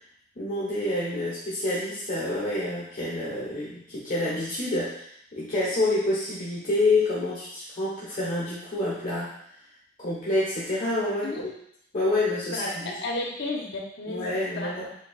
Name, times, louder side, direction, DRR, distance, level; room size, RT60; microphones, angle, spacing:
voice 1, 0.4-9.3 10.0-11.3 11.9-12.9 14.1-14.8, left 2 dB, 40° left, -8 dB, 1.1 m, -28 dB
voice 2, 12.5-15.0, left 2 dB, 60° left, -1 dB, 0.9 m, -33 dB
7.3 x 2.7 x 2.4 m, 0.71 s
head